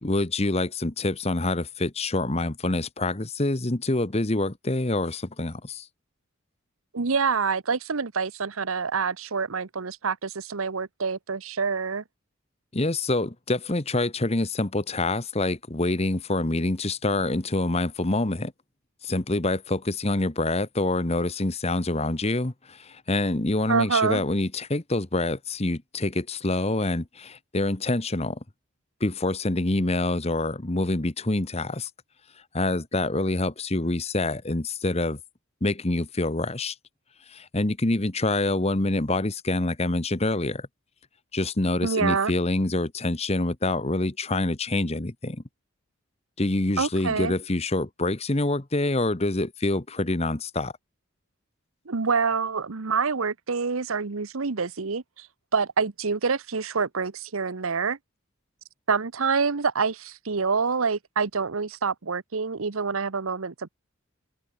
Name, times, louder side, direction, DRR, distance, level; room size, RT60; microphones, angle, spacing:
voice 1, 0.0-5.9 12.7-18.5 19.0-28.4 29.0-31.9 32.5-35.2 35.6-36.7 37.3-40.7 41.3-45.4 46.4-50.7, left 2 dB, 30° left, 1.2 m, -26 dB
voice 2, 6.9-12.0 23.7-24.2 41.8-42.3 46.8-47.3 51.9-55.3 55.5-58.0 58.9-63.7, right 5 dB, 80° right, 0.9 m, -26 dB
head